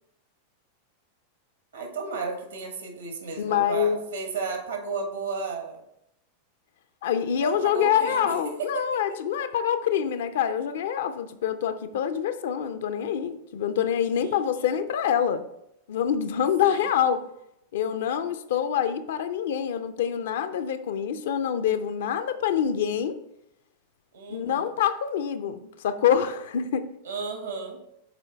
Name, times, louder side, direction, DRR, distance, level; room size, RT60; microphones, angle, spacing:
voice 1, 1.7-5.8 7.4-9.2 14.2-14.6 16.6-16.9 24.1-24.7 27.0-27.8, right 4 dB, 70° right, 1.5 m, -34 dB
voice 2, 3.4-4.0 7.0-15.4 15.9-17.3 17.7-23.2 24.3-26.9, left 8 dB, 60° left, 0.5 m, -26 dB
6.9 x 4.4 x 4.2 m
figure-of-eight pair, 90°, 0 cm